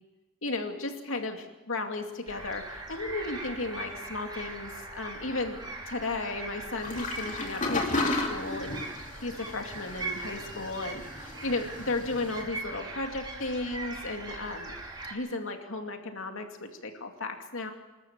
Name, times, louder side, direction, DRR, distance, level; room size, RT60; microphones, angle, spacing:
voice 1, 0.4-5.6 5.9-8.8 9.2-14.8 15.1-17.7, left 2 dB, 80° left, 4 dB, 2.5 m, -34 dB
sound 1, 2.3-15.1, right 2 dB, 20° right, 3.5 m, -40 dB
sound 2, 6.8-12.4, left 2 dB, 40° left, 2.7 m, -34 dB
27.0 x 13.5 x 7.4 m, 1.1 s
head